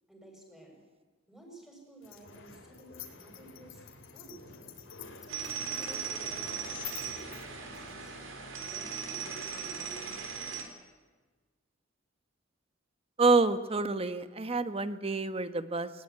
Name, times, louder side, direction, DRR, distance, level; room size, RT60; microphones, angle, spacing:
voice 1, 0.1-0.8 1.3-3.8 4.1-4.5 5.2-10.5, right 1 dB, 5° right, 1 dB, 6.7 m, -53 dB
sound 1, 2.0-8.2, left 6 dB, 80° left, 3.4 m, -47 dB
sound 2, 5.3-10.6, right 6 dB, 75° right, 3.9 m, -38 dB
voice 2, 13.2-15.9, right 3 dB, 30° right, 12 dB, 1.1 m, -27 dB
20.0 x 20.0 x 9.6 m, 1.3 s
head